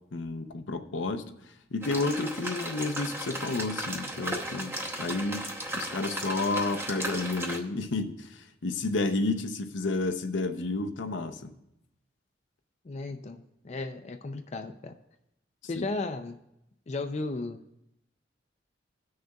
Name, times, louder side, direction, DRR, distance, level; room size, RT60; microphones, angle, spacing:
voice 1, 0.1-1.3 1.7-5.5 5.7-11.5 15.8-15.9, left 3 dB, 80° left, 7 dB, 0.7 m, -31 dB
sound 1, 1.8-7.6, right 1 dB, 15° right, 0.8 m, -35 dB
voice 2, 12.8-14.9 15.7-16.4 16.9-17.6, left 3 dB, 35° left, 6 dB, 0.5 m, -35 dB
18.0 x 6.5 x 2.3 m, 0.83 s
head